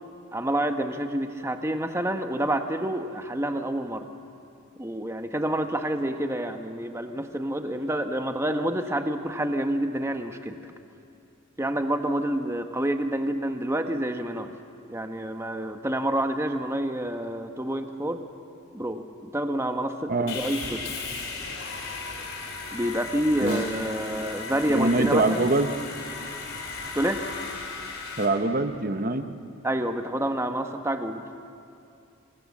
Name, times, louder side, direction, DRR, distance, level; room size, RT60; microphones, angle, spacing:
voice 1, 0.3-4.0 4.8-10.6 11.6-14.5 14.9-18.2 18.7-20.9 22.7-25.5 26.9-27.2 29.6-31.3, right 1 dB, 10° right, 6 dB, 1.2 m, -28 dB
Sawing, 20.3-28.2, left 4 dB, 65° left, 4.1 m, -36 dB
voice 2, 24.7-25.7 28.2-29.3, right 2 dB, 40° right, 8 dB, 1.1 m, -24 dB
27.5 x 22.0 x 7.4 m, 2.6 s
head